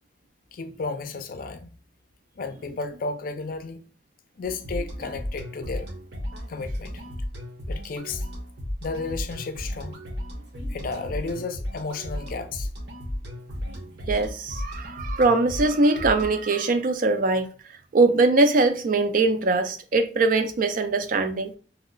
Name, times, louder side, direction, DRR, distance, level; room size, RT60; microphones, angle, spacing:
voice 1, 0.5-1.7 2.4-3.8 4.4-5.9 6.5-7.0 7.7-8.2 8.8-10.0 10.7-12.7, left 4 dB, 55° left, 0.4 m, -33 dB
sound 1, 4.4-16.4, equal, 70° right, 0.9 m, -34 dB
voice 2, 14.1-17.5 17.9-21.5, right 3 dB, 50° right, 0.4 m, -22 dB
2.9 x 2.0 x 3.7 m
head